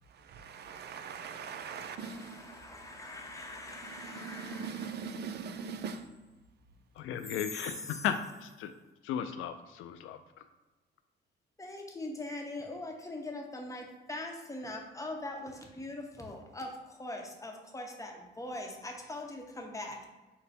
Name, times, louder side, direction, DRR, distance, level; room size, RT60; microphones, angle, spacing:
voice 1, 0.0-6.1, right 6 dB, 55° right, 0.5 m, -42 dB
voice 2, 1.5-4.7 7.5-8.1 11.6-20.1, left 2 dB, 15° left, 0.8 m, -42 dB
voice 3, 7.0-8.7 9.0-10.2, left 8 dB, 85° left, 0.4 m, -35 dB
5.5 x 2.2 x 4.2 m
cardioid pair, 90°, 20 cm